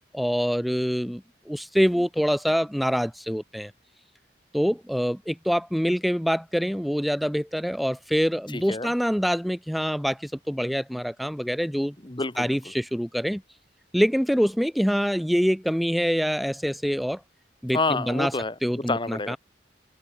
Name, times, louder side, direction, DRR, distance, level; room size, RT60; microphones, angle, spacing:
voice 1, 0.1-3.7 4.5-11.9 12.4-13.4 13.9-17.2 17.6-18.3 18.6-19.4, equal, ahead, 3.3 m, -25 dB
voice 2, 8.5-8.9 12.0-12.5 17.7-19.4, left 3 dB, 25° left, 1.5 m, -28 dB
open air
head